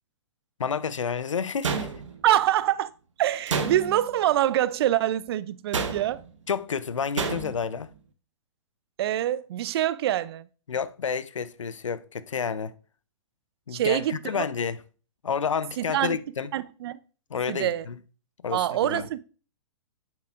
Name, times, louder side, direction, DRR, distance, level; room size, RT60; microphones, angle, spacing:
voice 1, 0.6-1.9 6.5-7.9 10.7-12.7 13.7-14.8 15.2-16.5 17.3-18.0 18.4-19.1, left 6 dB, 85° left, 0.6 m, -30 dB
sound 1, 1.6-2.4 3.5-4.1 5.7-6.3 7.2-7.7, right 5 dB, 80° right, 1.1 m, -29 dB
voice 2, 2.2-2.9 3.2-6.2 9.0-10.5 13.7-14.5 15.8-16.2 16.5-17.0 17.5-17.9 18.5-19.2, right 12 dB, 55° right, 0.5 m, -25 dB
8.9 x 7.4 x 2.5 m
hypercardioid pair, 120°, 16 cm